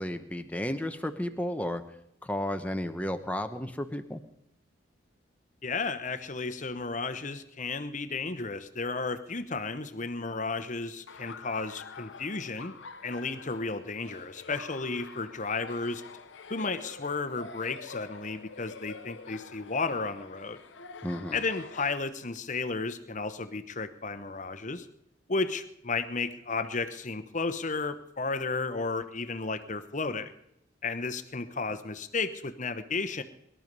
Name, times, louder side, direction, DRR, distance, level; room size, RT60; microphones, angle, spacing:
voice 1, 0.0-1.8 2.2-4.2 21.0-21.4, left 1 dB, 10° left, 7 dB, 0.9 m, -33 dB
voice 2, 5.6-12.7 13.0-16.0 16.5-20.6 21.3-24.9 25.3-30.3 30.8-33.2, left 4 dB, 40° left, 11 dB, 1.0 m, -33 dB
Laughter, 11.1-22.0, left 4 dB, 75° left, 0.9 m, -46 dB
21.5 x 12.5 x 5.4 m, 0.80 s
head